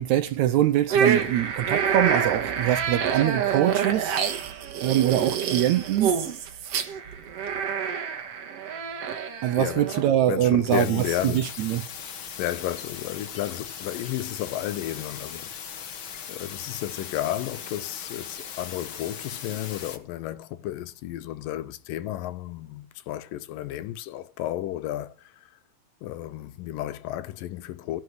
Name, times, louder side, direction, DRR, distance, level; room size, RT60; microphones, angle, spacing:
voice 1, 0.0-4.2 4.8-6.1 9.4-11.8, right 12 dB, 75° right, 1.8 m, -23 dB
sound 1, 0.9-10.1, right 7 dB, 55° right, 2.2 m, -27 dB
voice 2, 9.6-11.5 12.4-15.5 16.3-25.5 26.0-28.0, left 13 dB, 80° left, 2.5 m, -32 dB
sound 2, 10.7-20.0, left 7 dB, 55° left, 1.5 m, -39 dB
17.0 x 6.2 x 8.0 m
omnidirectional pair, 3.9 m